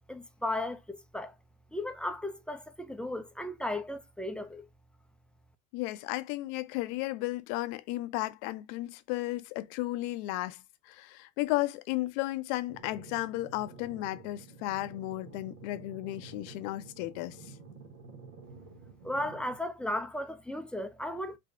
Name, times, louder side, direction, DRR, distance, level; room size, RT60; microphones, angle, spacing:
voice 1, 0.1-1.3 1.7-4.7 19.0-21.4, left 1 dB, ahead, 0.5 m, -35 dB
voice 2, 5.7-10.6 10.9-17.4, left 17 dB, 50° left, 0.7 m, -34 dB
sound 1, 12.7-19.6, right 3 dB, 70° right, 1.6 m, -50 dB
5.0 x 2.7 x 3.4 m
figure-of-eight pair, 70°, 45 cm